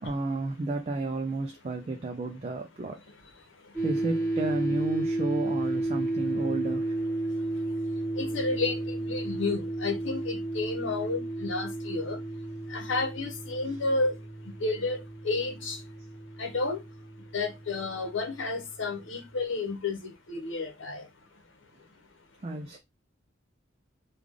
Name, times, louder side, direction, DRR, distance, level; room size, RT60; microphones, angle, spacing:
voice 1, 0.0-3.0 3.8-6.9 22.4-22.8, right 2 dB, 30° right, 0.4 m, -32 dB
sound 1, 3.7-19.0, right 2 dB, 5° left, 1.4 m, -33 dB
voice 2, 8.2-12.2 12.7-14.1 14.6-15.8 16.4-16.8 17.3-21.0, left 3 dB, 75° left, 0.9 m, -31 dB
3.3 x 2.3 x 3.5 m
head